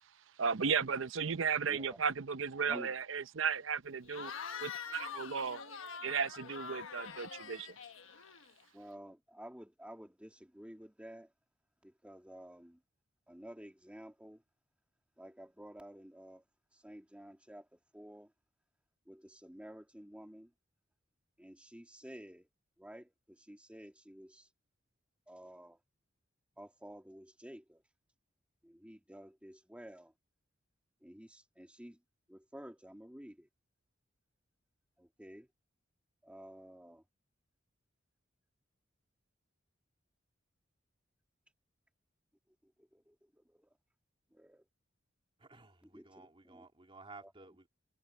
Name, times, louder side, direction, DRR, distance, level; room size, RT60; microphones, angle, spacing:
voice 1, 0.4-4.3 4.6-5.6 6.0-7.7, right 6 dB, 75° right, 0.7 m, -35 dB
voice 2, 1.7-2.0 2.7-2.9 8.7-11.3 11.8-12.8 13.3-14.4 15.2-16.4 16.7-18.3 19.1-20.5 21.4-22.5 22.8-24.5 25.3-25.8 26.6-27.8 28.6-30.1 31.0-32.0 32.3-33.5 35.0-35.5 36.2-37.0 42.6-43.7 44.3-44.6 45.8-46.7 47.2-47.3, equal, 5° right, 2.2 m, -52 dB
Cheering / Crowd, 4.1-8.7, left 6 dB, 90° left, 1.3 m, -45 dB
voice 3, 45.4-47.7, right 3 dB, 25° right, 2.7 m, -55 dB
head